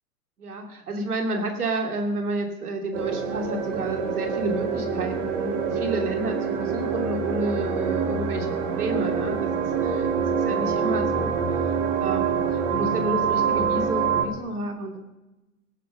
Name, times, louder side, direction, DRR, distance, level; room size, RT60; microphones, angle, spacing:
voice 1, 0.4-15.0, right 2 dB, 70° right, 4 dB, 2.7 m, -31 dB
sound 1, 2.9-14.2, right 6 dB, 40° right, 2.5 m, -26 dB
18.0 x 9.3 x 5.6 m, 1.0 s
figure-of-eight pair, 100°, 46 cm